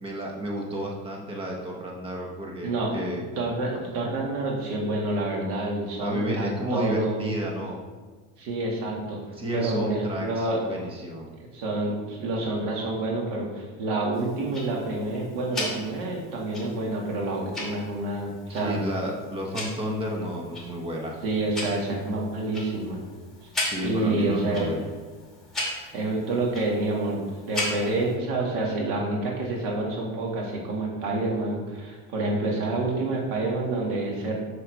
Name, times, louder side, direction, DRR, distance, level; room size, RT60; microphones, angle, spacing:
voice 1, 0.0-3.2 6.0-7.8 9.3-11.3 18.5-21.2 23.6-24.9, equal, 15° right, 0 dB, 1.1 m, -31 dB
voice 2, 2.6-3.0 3.4-7.2 8.4-10.6 11.5-18.8 21.2-23.0 23.8-24.7 25.9-34.4, right 2 dB, 80° right, -1 dB, 2.3 m, -28 dB
Tick-tock, 14.1-28.1, left 1 dB, ahead, 2.4 m, -37 dB
6.9 x 6.7 x 4.7 m, 1.5 s
cardioid pair, 160°, 32 cm